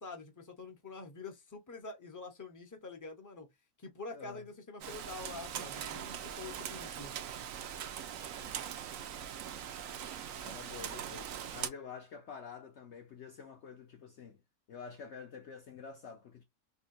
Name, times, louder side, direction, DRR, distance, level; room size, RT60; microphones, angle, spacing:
voice 1, 0.0-3.5 3.8-7.1, left 3 dB, 20° left, 0.6 m, -46 dB
voice 2, 4.1-4.4 10.4-14.4 14.7-16.4, left 6 dB, 65° left, 0.8 m, -48 dB
Rain, 4.8-11.7, right 9 dB, 70° right, 0.9 m, -41 dB
3.5 x 2.2 x 2.6 m
omnidirectional pair, 1.6 m